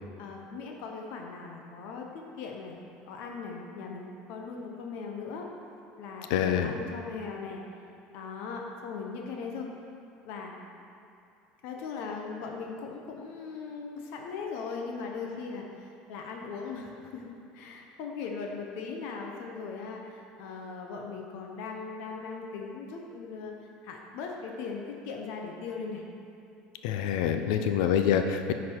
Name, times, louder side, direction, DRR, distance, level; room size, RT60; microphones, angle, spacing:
voice 1, 0.2-5.5 6.0-7.6 8.1-9.7 10.2-10.5 11.6-23.5 23.8-26.0 27.3-27.7, left 5 dB, 60° left, 1 dB, 0.7 m, -39 dB
voice 2, 6.3-6.7 26.8-28.5, left 8 dB, 90° left, 7 dB, 0.4 m, -26 dB
9.5 x 4.1 x 4.5 m, 2.6 s
cardioid pair, 170°, 3 cm